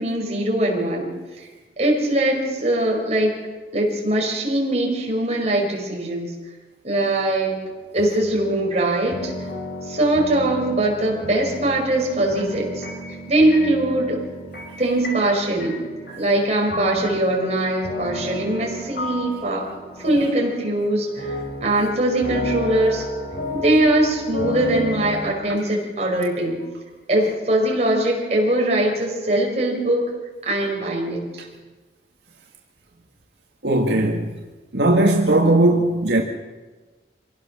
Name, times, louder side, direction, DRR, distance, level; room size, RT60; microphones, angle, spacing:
voice 1, 0.0-1.5 1.8-3.4 3.7-6.3 6.8-7.6 7.9-9.3 9.8-12.8 13.3-14.2 14.8-15.8 16.2-23.0 23.5-26.6 27.1-30.1 30.4-31.4, right 1 dB, 40° right, 5.4 m, -21 dB
sound 1, 7.5-25.3, left 2 dB, 60° left, 4.2 m, -33 dB
voice 2, 33.6-34.4 34.7-36.2, right 2 dB, 75° right, 1.8 m, -18 dB
25.5 x 17.5 x 6.4 m
head